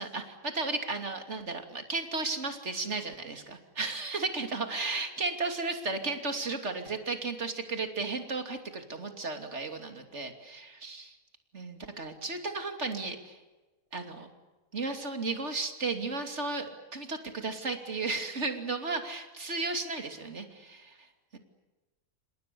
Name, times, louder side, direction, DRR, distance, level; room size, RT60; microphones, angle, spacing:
voice 1, 0.0-11.2 11.5-13.4 13.9-14.3 14.7-16.7 16.9-21.0 21.3-21.4, right 3 dB, 50° right, 6 dB, 3.1 m, -34 dB
29.0 x 27.5 x 7.0 m, 1.2 s
omnidirectional pair, 1.5 m